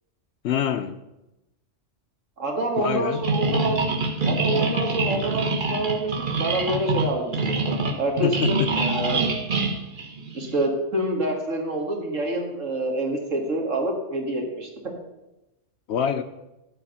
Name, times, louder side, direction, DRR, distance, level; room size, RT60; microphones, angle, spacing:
voice 1, 0.4-1.0 2.8-3.2 8.2-8.9 15.9-16.2, left 8 dB, 65° left, 9 dB, 0.8 m, -26 dB
voice 2, 2.4-3.9 4.3-7.6 8.0-9.3 10.3-14.9, right 1 dB, 85° right, 1 dB, 2.3 m, -27 dB
sound 1, 3.2-10.7, right 3 dB, 45° right, 1.1 m, -25 dB
12.0 x 5.0 x 7.7 m, 0.95 s
omnidirectional pair, 1.3 m